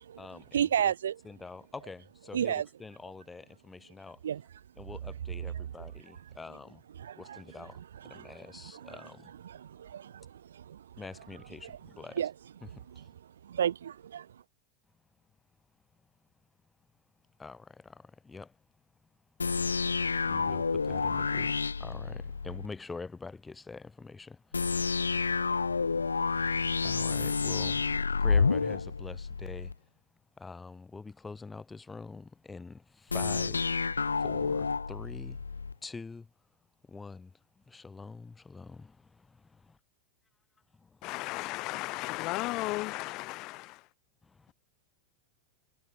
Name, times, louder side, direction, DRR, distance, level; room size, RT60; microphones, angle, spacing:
voice 1, 0.0-0.9 1.2-4.2 4.8-6.8 7.2-9.3 11.0-12.2 12.6-13.1 17.4-18.6 20.2-29.9 30.4-35.5 35.8-36.3 36.8-39.6 40.7-41.1 44.3-44.5, left 4 dB, 10° left, 2.7 m, -46 dB
voice 2, 0.5-1.2 2.3-2.7 4.2-4.4 7.0-7.4 7.8-8.3 8.7-9.0 9.4-10.9 11.6-11.8 12.2-12.3 13.0-13.1 13.4-14.3, right 9 dB, 65° right, 0.8 m, -32 dB
sound 1, 19.4-22.7 24.5-29.7 33.1-35.7, left 4 dB, 75° left, 0.8 m, -29 dB
voice 3, 41.0-43.4, left 22 dB, 40° left, 1.1 m, -34 dB
figure-of-eight pair, 90°, 0 cm